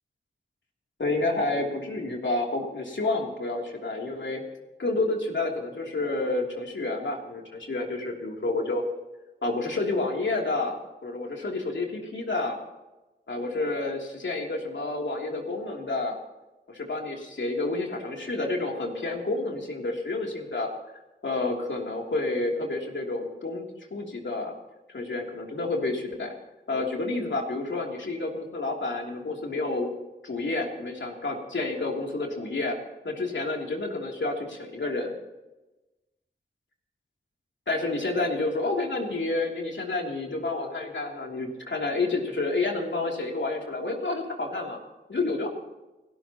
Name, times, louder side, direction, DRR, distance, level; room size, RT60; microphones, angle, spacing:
voice 1, 1.0-4.4 4.8-8.8 9.4-10.8 11.0-12.6 13.3-16.2 16.7-20.7 21.2-24.5 24.9-26.3 26.7-29.9 30.2-32.7 33.0-35.1 37.7-44.8 45.1-45.5, left 2 dB, 75° left, 0 dB, 3.0 m, -29 dB
29.5 x 12.5 x 3.0 m, 1.1 s
wide cardioid pair, 65°, 19 cm